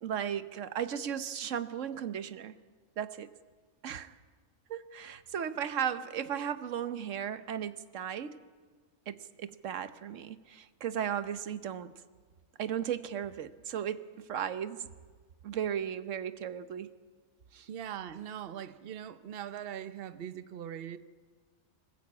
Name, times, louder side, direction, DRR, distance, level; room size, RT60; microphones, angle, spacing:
voice 1, 0.0-2.5 3.0-3.3 3.8-4.1 4.7-8.4 9.1-11.9 12.6-14.9 15.4-16.9 17.5-17.7, right 9 dB, 85° right, 1.2 m, -36 dB
voice 2, 17.7-21.0, right 9 dB, 55° right, 1.0 m, -41 dB
25.0 x 15.5 x 8.5 m
omnidirectional pair, 1.3 m